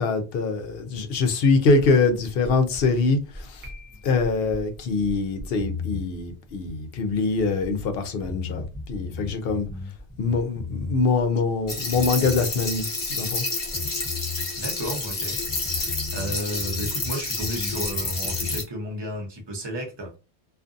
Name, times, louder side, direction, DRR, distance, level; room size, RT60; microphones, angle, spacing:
voice 1, 0.0-3.6 4.0-9.7 10.2-12.9 13.2-13.4, left 4 dB, 65° left, 0.7 m, -23 dB
sound 1, 2.7-7.9 8.1-11.3 11.5-13.4 13.7-17.1 17.4-18.6, left 3 dB, 10° left, 0.4 m, -36 dB
Piano, 3.6-4.6, left 2 dB, 70° right, 1.1 m, -50 dB
sound 2, 11.7-18.6, left 3 dB, 50° left, 1.1 m, -29 dB
voice 2, 14.5-20.2, equal, 25° right, 0.7 m, -33 dB
2.5 x 2.5 x 2.4 m
omnidirectional pair, 1.1 m